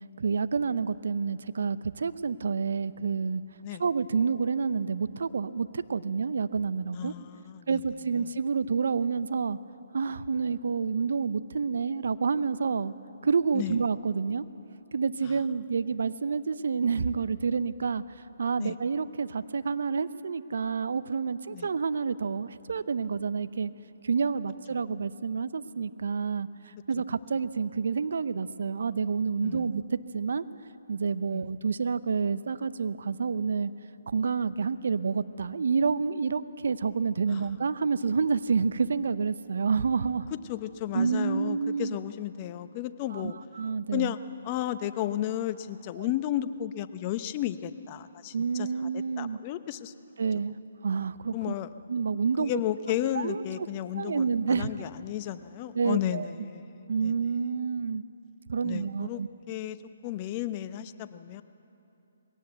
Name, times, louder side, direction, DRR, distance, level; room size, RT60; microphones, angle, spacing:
voice 1, 0.2-3.4 3.8-7.1 7.7-9.6 9.9-12.9 13.2-14.4 14.9-23.7 24.0-30.4 30.9-33.7 34.1-40.3 40.9-42.0 43.1-43.3 43.6-44.1 46.0-46.1 48.3-49.4 50.2-50.5 50.8-51.5 51.9-52.5 53.1-53.4 54.0-54.7 55.7-56.3 56.9-58.0 58.5-59.3, right 5 dB, 70° right, 14 dB, 0.7 m, -28 dB
voice 2, 6.9-7.8 8.1-8.3 13.5-13.8 15.2-15.4 18.6-18.8 21.5-21.7 29.4-29.7 31.3-31.5 37.3-37.5 40.5-43.3 43.9-44.2 44.4-48.7 48.9-49.9 51.3-51.7 52.4-56.8 57.0-57.1 58.6-59.2 59.5-59.8 60.0-61.4, left 12 dB, 30° left, 12 dB, 0.8 m, -33 dB
21.5 x 17.0 x 8.1 m, 2.8 s
hypercardioid pair, 145°, 0 cm